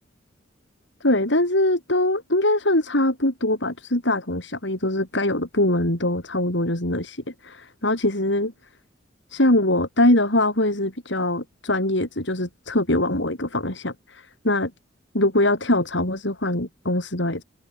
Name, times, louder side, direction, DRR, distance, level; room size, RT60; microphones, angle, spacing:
voice 1, 1.0-8.5 9.3-14.7 15.1-17.4, left 1 dB, 70° left, 6.1 m, -22 dB
head